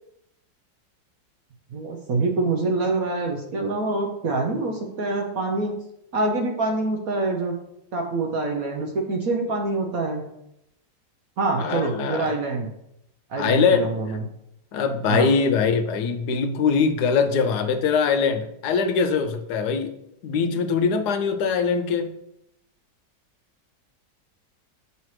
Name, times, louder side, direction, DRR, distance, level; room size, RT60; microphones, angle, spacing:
voice 1, 1.7-5.8 6.1-7.6 7.9-10.2 11.4-12.7 13.3-14.2 15.1-15.3, right 3 dB, 60° right, 2 dB, 1.0 m, -25 dB
voice 2, 11.6-12.3 13.4-13.9 14.7-19.9 20.2-22.1, left 5 dB, 70° left, 9 dB, 1.1 m, -22 dB
7.5 x 5.6 x 3.1 m, 0.79 s
omnidirectional pair, 2.0 m